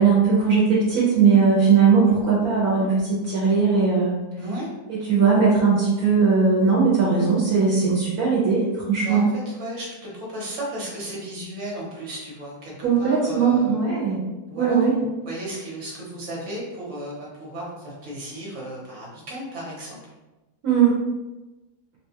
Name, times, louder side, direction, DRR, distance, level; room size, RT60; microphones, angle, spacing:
voice 1, 0.0-4.1 4.9-9.3 12.8-14.2 14.6-14.9 20.6-21.0, right 5 dB, 70° right, -6 dB, 1.3 m, -19 dB
voice 2, 4.4-4.7 9.0-13.8 14.5-20.0, right 1 dB, 50° right, -4 dB, 1.3 m, -34 dB
3.7 x 2.3 x 2.8 m, 1.1 s
omnidirectional pair, 1.7 m